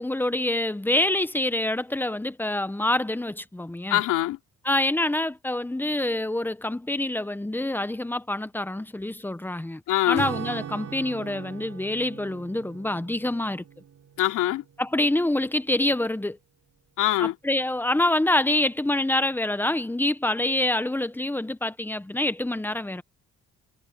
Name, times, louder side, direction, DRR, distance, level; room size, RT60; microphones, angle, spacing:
voice 1, 0.0-4.0 4.6-9.8 10.1-13.6 14.8-16.4 17.2-23.0, left 1 dB, 5° left, 1.0 m, -26 dB
voice 2, 3.9-4.4 9.9-10.3 14.2-14.6 17.0-17.3, left 14 dB, 90° left, 3.0 m, -23 dB
Acoustic guitar / Strum, 10.1-14.9, right 8 dB, 55° right, 6.8 m, -39 dB
cardioid pair, 90°, 30 cm